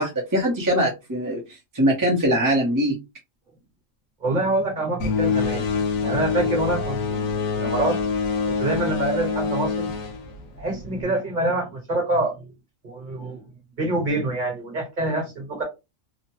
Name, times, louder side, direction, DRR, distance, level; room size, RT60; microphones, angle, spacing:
voice 1, 0.0-1.4 1.7-3.0, equal, 20° right, 0.7 m, -22 dB
voice 2, 4.2-5.6 6.0-7.3 7.5-8.0 8.5-9.9 10.6-12.5 12.8-13.4 13.8-15.6, right 2 dB, 40° right, 1.3 m, -26 dB
sound 1, 5.0-11.0, left 5 dB, 85° left, 1.1 m, -25 dB
3.1 x 2.1 x 2.8 m
omnidirectional pair, 1.4 m